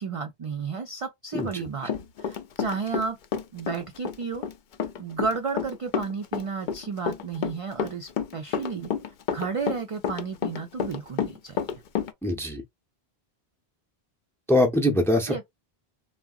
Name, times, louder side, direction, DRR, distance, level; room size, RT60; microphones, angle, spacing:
voice 1, 0.0-1.9 2.2-3.2 3.5-4.4 5.0-8.9 9.3-11.8 15.3-15.4, right 5 dB, 50° right, 0.4 m, -32 dB
voice 2, 1.3-1.6 12.2-12.6 14.5-15.4, left 1 dB, 5° left, 0.5 m, -23 dB
Run, 1.4-3.1 3.3-12.1, left 7 dB, 60° left, 0.6 m, -30 dB
3.6 x 2.1 x 2.2 m
omnidirectional pair, 1.0 m